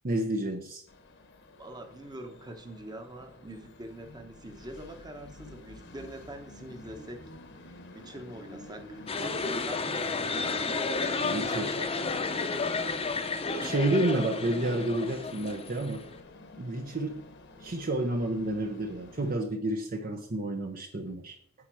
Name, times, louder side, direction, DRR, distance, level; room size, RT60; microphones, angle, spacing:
voice 1, 0.0-0.8 11.2-11.8 13.6-16.0 16.6-17.2 17.6-21.4, right 1 dB, 45° right, 5 dB, 0.8 m, -30 dB
Train, 0.9-19.3, left 2 dB, 60° left, 1.1 m, -49 dB
voice 2, 1.6-7.2 7.9-11.9 12.7-13.1 13.5-14.2, right 1 dB, 20° right, 5 dB, 1.1 m, -44 dB
sound 1, 9.1-16.2, left 4 dB, 30° left, 0.8 m, -32 dB
9.7 x 4.3 x 6.2 m, 0.63 s
head